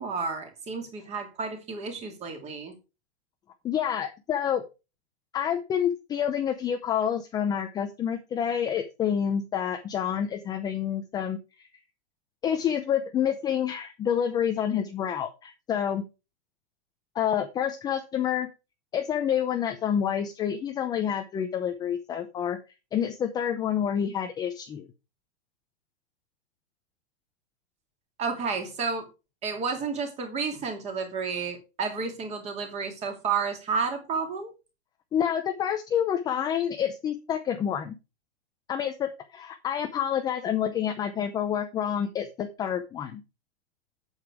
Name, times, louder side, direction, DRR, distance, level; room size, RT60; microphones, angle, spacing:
voice 1, 0.0-2.7 28.2-29.1 29.4-34.5, right 5 dB, 20° right, 2.7 m, -31 dB
voice 2, 3.6-4.6 5.3-11.7 12.4-16.0 17.1-18.5 18.9-22.6 22.9-24.9 35.1-37.9 38.7-43.2, left 9 dB, 10° left, 0.6 m, -28 dB
8.6 x 8.1 x 4.7 m
hypercardioid pair, 160°, 33 cm